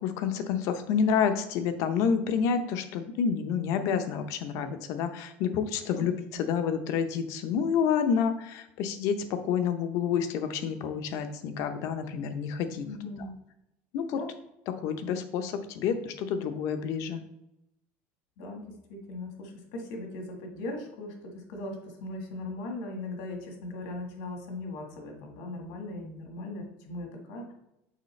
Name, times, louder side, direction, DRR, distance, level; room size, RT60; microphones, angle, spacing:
voice 1, 0.0-12.9 13.9-14.2 14.8-17.2, left 7 dB, 60° left, 9 dB, 0.7 m, -29 dB
voice 2, 12.8-13.3 14.1-14.3 18.4-18.6 18.9-27.5, left 2 dB, 75° left, 2 dB, 1.6 m, -39 dB
6.6 x 4.6 x 3.2 m, 0.87 s
cardioid pair, 145°, 6 cm